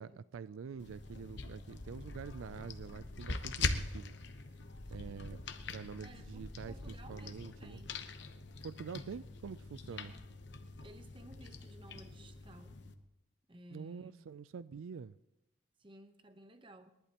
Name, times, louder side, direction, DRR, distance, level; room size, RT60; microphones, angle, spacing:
voice 1, 0.0-4.1 4.9-5.4 5.7-7.8 8.6-10.1 13.7-15.2, right 6 dB, 90° right, 0.4 m, -46 dB
sound 1, 0.8-12.9, left 3 dB, 60° left, 1.0 m, -43 dB
voice 2, 4.9-5.2 6.0-8.1 9.1-9.2 9.9-10.2 10.8-12.8 13.5-14.1 15.8-16.9, right 1 dB, 25° right, 0.9 m, -56 dB
27.0 x 11.5 x 3.0 m
head